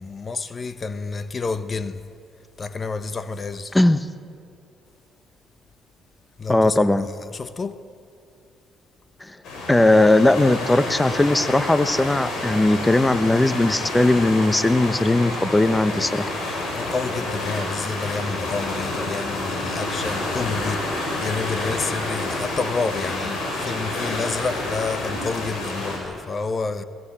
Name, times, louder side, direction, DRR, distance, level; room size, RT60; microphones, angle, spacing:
voice 1, 0.0-2.0 2.6-3.8 6.4-7.8 16.7-26.8, left 4 dB, 40° left, 1.0 m, -29 dB
voice 2, 3.7-4.1 6.5-7.1 9.2-9.4 9.7-16.3, left 2 dB, 15° left, 1.0 m, -18 dB
sound 1, 9.4-26.0, left 2 dB, 65° left, 6.4 m, -29 dB
21.5 x 18.5 x 8.7 m
hypercardioid pair, 50°, 0 cm